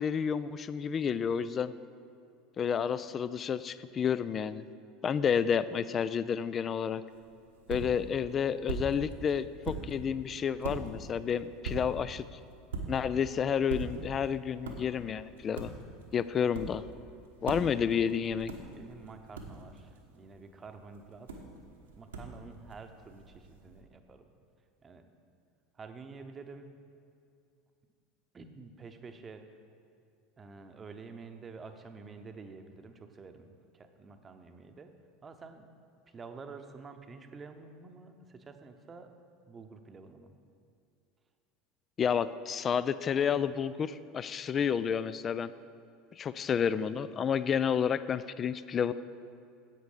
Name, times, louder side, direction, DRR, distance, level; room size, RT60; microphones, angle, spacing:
voice 1, 0.0-1.7 2.6-4.6 5.0-7.0 7.7-12.4 12.9-15.7 16.1-16.8 17.4-18.5 42.0-45.5 46.2-48.9, left 7 dB, 35° left, 15 dB, 0.3 m, -30 dB
sound 1, 7.1-23.8, right 3 dB, 75° right, 1.1 m, -43 dB
voice 2, 18.7-21.3 21.7-24.3 24.8-25.0 25.7-26.7 28.3-29.4 30.4-34.9 35.2-35.7 36.1-39.1 39.4-40.3, right 4 dB, 25° right, 7 dB, 0.9 m, -49 dB
10.5 x 8.2 x 5.0 m, 2.5 s
figure-of-eight pair, 75°, 0 cm